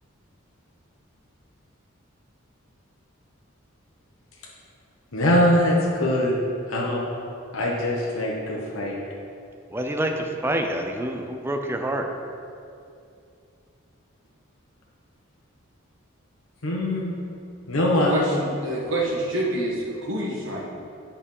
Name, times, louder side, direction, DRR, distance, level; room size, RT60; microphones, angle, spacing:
voice 1, 5.1-6.3 6.7-7.0 7.5-8.9 16.6-17.1 17.7-18.2, left 1 dB, 85° left, -3 dB, 1.0 m, -22 dB
voice 2, 9.7-12.1, right 1 dB, 10° right, 4 dB, 0.5 m, -27 dB
voice 3, 17.9-20.6, right 1 dB, 70° right, -3 dB, 1.5 m, -27 dB
7.5 x 4.4 x 5.5 m, 2.5 s
head